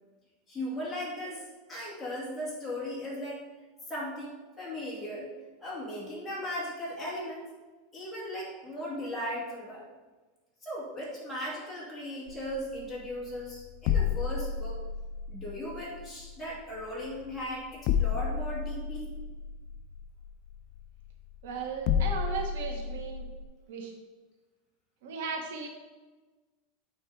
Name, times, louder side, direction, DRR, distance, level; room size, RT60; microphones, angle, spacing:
voice 1, 0.5-3.4 3.9-5.3 5.6-7.4 7.9-9.8 10.6-14.8 15.3-19.1, left 1 dB, 5° left, -7 dB, 2.3 m, -37 dB
sound 1, 12.3-23.4, left 8 dB, 40° left, 0.4 m, -32 dB
voice 2, 21.4-23.2 23.7-23.9 25.0-25.7, right 5 dB, 80° right, 1 dB, 1.6 m, -36 dB
9.0 x 4.4 x 4.9 m, 1.3 s
supercardioid pair, 170°, 0 cm